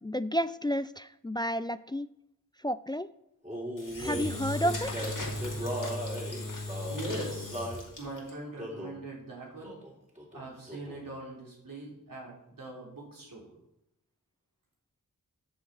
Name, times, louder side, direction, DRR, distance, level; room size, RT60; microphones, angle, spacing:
voice 1, 0.0-2.1 2.6-3.1 4.0-5.0, equal, 15° left, 15 dB, 0.3 m, -31 dB
Male singing, 3.4-7.8 8.6-9.0 9.6-9.9 10.2-11.1, equal, 20° right, 3.6 m, -38 dB
Engine / Drill, 3.8-8.3, left 1 dB, 70° left, 2.5 m, -36 dB
voice 2, 6.9-7.7 8.0-9.8 10.3-13.5, right 2 dB, 85° right, -3 dB, 3.3 m, -42 dB
12.5 x 6.9 x 4.0 m, 0.83 s
wide cardioid pair, 45°, 33 cm